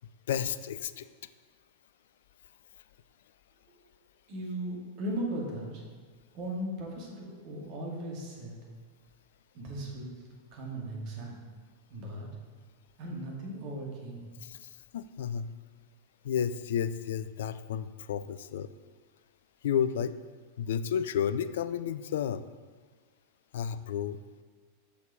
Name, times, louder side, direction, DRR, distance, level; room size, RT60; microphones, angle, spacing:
voice 1, 0.3-1.1 14.4-15.5 16.2-18.7 19.6-20.1 20.6-22.5 23.5-24.2, left 8 dB, 60° left, 14 dB, 0.4 m, -32 dB
voice 2, 4.3-5.8 6.3-8.6 9.5-10.2 10.5-11.4 11.9-12.3 13.0-14.2, right 1 dB, 45° right, -2 dB, 2.2 m, -37 dB
6.9 x 6.2 x 5.2 m, 1.5 s
figure-of-eight pair, 90°, 0 cm